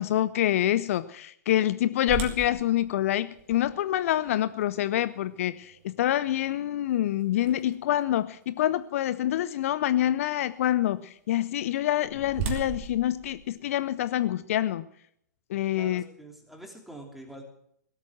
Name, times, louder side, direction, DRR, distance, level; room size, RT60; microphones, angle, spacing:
voice 1, 0.0-14.8 15.5-16.0, left 12 dB, 50° left, 15 dB, 0.6 m, -26 dB
sound 1, 2.1-8.0 8.6-8.7 9.3-9.5 11.6-14.2, right 7 dB, 40° right, 2.7 m, -39 dB
voice 2, 15.7-17.4, right 1 dB, ahead, 2 dB, 3.1 m, -45 dB
17.5 x 8.4 x 7.6 m, 0.70 s
figure-of-eight pair, 115°, 9 cm